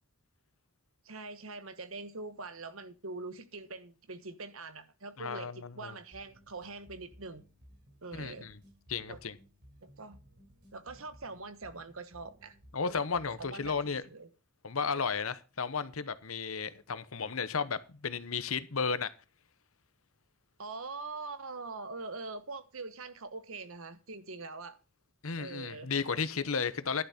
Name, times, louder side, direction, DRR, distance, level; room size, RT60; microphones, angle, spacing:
voice 1, 1.0-7.4 8.0-8.5 9.1-9.2 9.8-10.2 10.7-12.6 12.8-13.0 13.4-14.3 20.6-24.8 25.4-25.9, right 3 dB, 80° right, 1.3 m, -43 dB
voice 2, 5.2-5.9 8.1-8.5 8.9-9.4 12.7-14.0 14.6-19.1 25.2-27.0, left 5 dB, 80° left, 1.0 m, -34 dB
sound 1, 6.1-14.1, equal, 55° right, 4.2 m, -59 dB
11.0 x 10.5 x 4.3 m
head